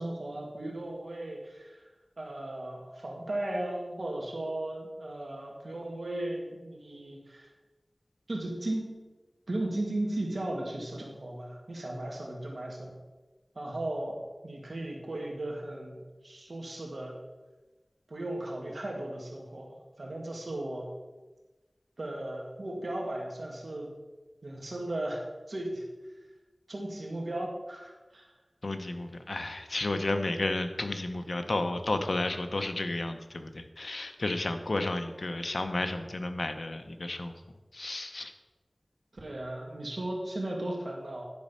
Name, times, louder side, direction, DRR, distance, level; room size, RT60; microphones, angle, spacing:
voice 1, 0.0-1.8 2.2-7.5 8.3-9.0 9.5-13.0 13.6-17.1 18.1-20.9 22.0-23.9 24.4-25.2 25.5-25.8 26.7-28.3 39.1-41.3, right 1 dB, 85° right, -1 dB, 2.0 m, -36 dB
voice 2, 28.6-37.3 37.7-38.3, left 2 dB, 80° left, 7 dB, 0.8 m, -32 dB
10.5 x 5.3 x 5.6 m, 1.2 s
wide cardioid pair, 50°, 0 cm